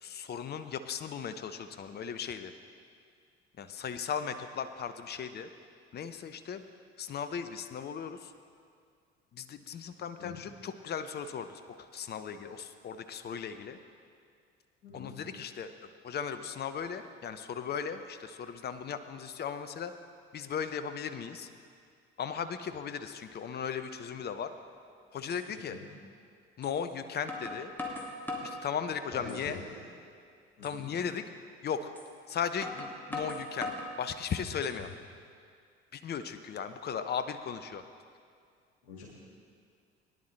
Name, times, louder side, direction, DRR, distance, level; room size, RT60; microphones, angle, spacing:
voice 1, 0.0-2.5 3.6-5.5 5.9-6.6 7.0-8.3 9.3-13.8 14.9-19.9 20.3-21.5 22.2-24.5 25.1-25.8 26.6-27.7 28.4-29.6 30.6-31.2 31.6-31.9 32.3-33.7 34.0-34.9 35.9-37.8, left 7 dB, 30° left, 10 dB, 0.7 m, -37 dB
voice 2, 14.8-15.2 25.5-25.9 29.1-29.8 30.6-30.9 38.9-39.1, left 4 dB, 80° left, -4 dB, 2.2 m, -45 dB
sound 1, 24.7-24.8 25.3-25.4 26.6-26.8 27.3-28.6 29.1-29.7 30.0-30.1 30.6-30.8 32.0-32.1 32.6-33.9 34.4-35.0, left 2 dB, 5° left, 2.0 m, -40 dB
18.0 x 10.5 x 3.2 m, 2.2 s
figure-of-eight pair, 55°, 32 cm